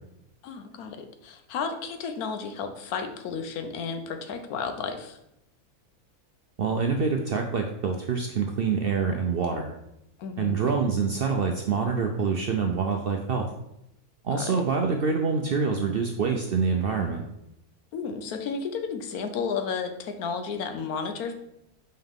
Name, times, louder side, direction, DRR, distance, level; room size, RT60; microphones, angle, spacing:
voice 1, 0.4-5.2 10.2-10.6 14.3-14.6 17.9-21.4, left 5 dB, 85° left, 7 dB, 1.2 m, -33 dB
voice 2, 6.6-9.7 10.4-13.5 14.2-17.2, right 5 dB, 65° right, 3 dB, 0.6 m, -26 dB
5.7 x 5.3 x 3.6 m, 0.82 s
omnidirectional pair, 1.5 m